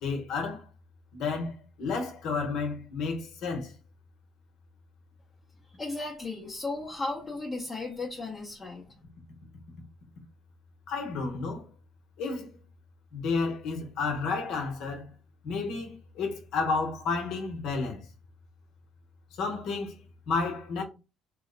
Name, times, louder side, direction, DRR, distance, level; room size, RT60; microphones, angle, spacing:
voice 1, 0.0-0.6 1.1-3.7 10.9-11.6 12.2-12.5 13.1-15.1 15.4-18.0 19.4-20.0 20.3-20.8, left 4 dB, 75° left, 0.9 m, -31 dB
voice 2, 5.7-8.8, left 3 dB, 25° left, 0.7 m, -35 dB
3.0 x 2.0 x 3.8 m
cardioid pair, 100°, 0 cm